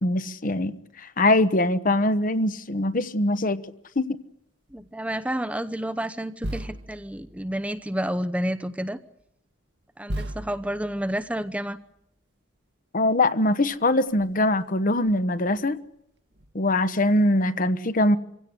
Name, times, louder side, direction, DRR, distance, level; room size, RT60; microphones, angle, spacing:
voice 1, 0.0-0.7 1.2-3.6 4.0-4.2 12.9-15.8 16.5-18.2, left 1 dB, 45° left, 1.1 m, -22 dB
sound 1, 2.7-2.9 4.7-4.9 6.4-8.0 9.2-9.3 10.1-11.8 13.4-13.5 13.7-14.3 15.0-15.6 16.3-16.5, right 1 dB, 60° right, 1.7 m, -38 dB
voice 2, 4.7-9.0 10.0-11.8, right 1 dB, 5° right, 0.9 m, -30 dB
26.0 x 16.5 x 9.8 m
head